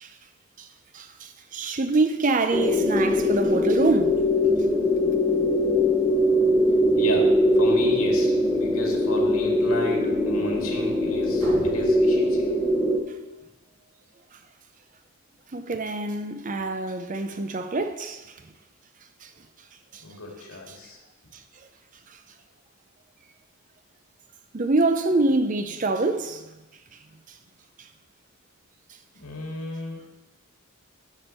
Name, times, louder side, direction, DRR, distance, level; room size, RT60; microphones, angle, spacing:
voice 1, 0.9-4.2 15.5-18.2 19.2-19.3 19.9-20.0 20.7-20.8 24.5-26.5 27.8-27.9, right 2 dB, 35° right, 0.5 m, -25 dB
sound 1, 2.5-13.0, left 1 dB, ahead, 0.9 m, -22 dB
voice 2, 6.9-12.5 20.0-21.0 29.2-30.0, left 2 dB, 80° left, 2.1 m, -33 dB
sound 2, 11.4-13.2, right 1 dB, 85° right, 2.3 m, -41 dB
9.9 x 7.0 x 4.4 m
head